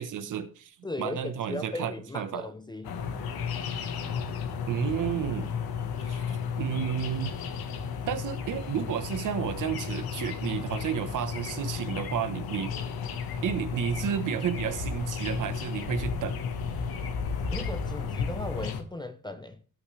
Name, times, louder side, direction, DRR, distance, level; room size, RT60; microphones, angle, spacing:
voice 1, 0.0-2.5 4.7-5.5 6.0-7.3 8.1-12.7 13.4-16.3, right 8 dB, 55° right, 1.2 m, -32 dB
voice 2, 0.8-3.0 17.5-19.6, left 2 dB, 10° left, 0.5 m, -37 dB
sound 1, 2.8-18.8, left 6 dB, 75° left, 1.5 m, -33 dB
18.0 x 6.4 x 3.3 m
cardioid pair, 175°, 36 cm